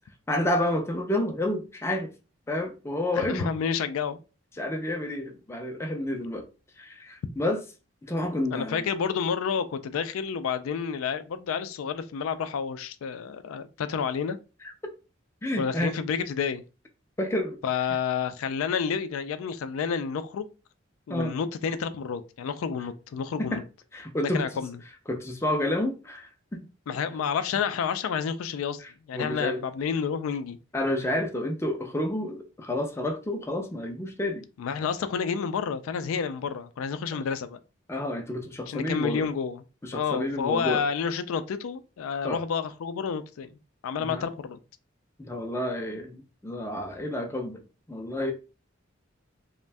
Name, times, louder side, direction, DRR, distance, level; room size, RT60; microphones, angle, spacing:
voice 1, 0.3-2.1 2.5-3.5 4.6-6.5 6.8-7.6 8.0-8.8 15.4-15.9 17.2-17.6 21.1-21.3 23.4-23.6 23.9-24.4 25.1-26.6 29.1-29.6 30.7-34.5 37.1-37.2 37.9-39.3 39.8-40.8 42.2-42.4 44.0-44.2 45.2-47.6 47.9-48.3, left 1 dB, 10° left, 0.3 m, -29 dB
voice 2, 3.1-4.2 8.5-14.4 15.6-16.6 17.6-20.5 21.1-23.6 24.2-24.8 26.9-28.8 29.1-30.6 34.6-37.6 38.7-39.6 39.9-43.6 43.8-44.6, left 6 dB, 85° left, 0.3 m, -30 dB
2.5 x 2.1 x 3.2 m
head